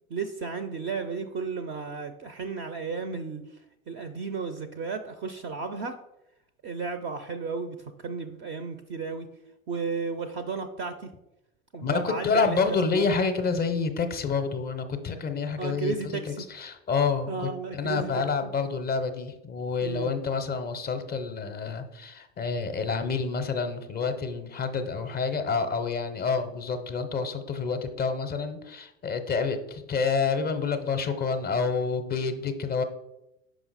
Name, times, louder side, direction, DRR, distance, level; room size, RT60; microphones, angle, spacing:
voice 1, 0.1-6.0 6.6-9.3 9.7-11.1 11.7-13.0 15.6-16.4 17.3-18.5 19.8-20.1, right 5 dB, 30° right, 9 dB, 0.4 m, -34 dB
voice 2, 11.8-32.8, left 5 dB, 20° left, 8 dB, 0.5 m, -28 dB
5.6 x 4.9 x 3.9 m, 0.88 s
hypercardioid pair, 85°, 43 cm